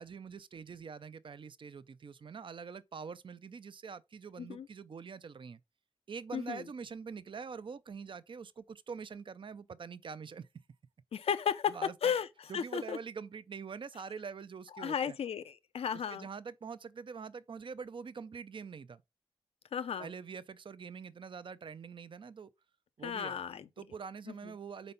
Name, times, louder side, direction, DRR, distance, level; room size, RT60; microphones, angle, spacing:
voice 1, 0.0-5.6 6.1-10.5 11.7-12.1 12.5-15.2 15.9-19.0 20.0-22.5 23.0-23.4 23.8-24.9, right 6 dB, 55° right, 0.5 m, -45 dB
voice 2, 6.3-6.6 11.1-11.8 12.0-12.3 12.5-13.0 14.8-16.3 19.7-20.1 23.0-23.6, left 8 dB, 85° left, 0.5 m, -34 dB
4.3 x 4.0 x 5.5 m
cardioid pair, 60°, 10 cm